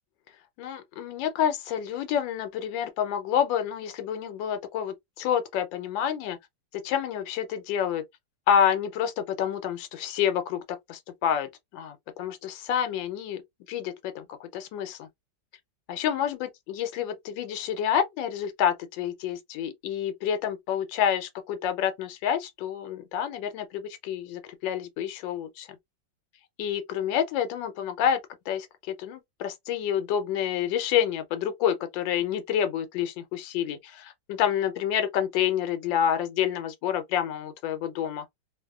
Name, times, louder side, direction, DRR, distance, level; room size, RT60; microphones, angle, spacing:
voice 1, 0.6-6.4 6.7-8.0 8.5-10.6 10.9-13.4 13.7-15.1 15.9-25.7 26.6-28.2 28.5-38.2, left 9 dB, 85° left, 1.3 m, -28 dB
3.0 x 2.0 x 2.2 m
omnidirectional pair, 2.0 m